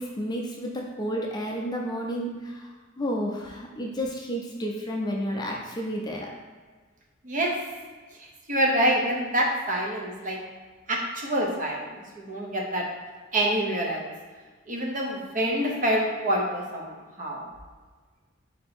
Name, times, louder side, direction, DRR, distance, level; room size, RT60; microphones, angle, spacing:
voice 1, 0.0-2.7 3.0-6.3, equal, 20° left, -1 dB, 0.5 m, -31 dB
voice 2, 8.5-10.4 10.9-12.9 13.3-14.1 14.7-17.5, right 1 dB, 40° right, -1 dB, 0.8 m, -26 dB
4.4 x 2.8 x 4.3 m, 1.4 s
head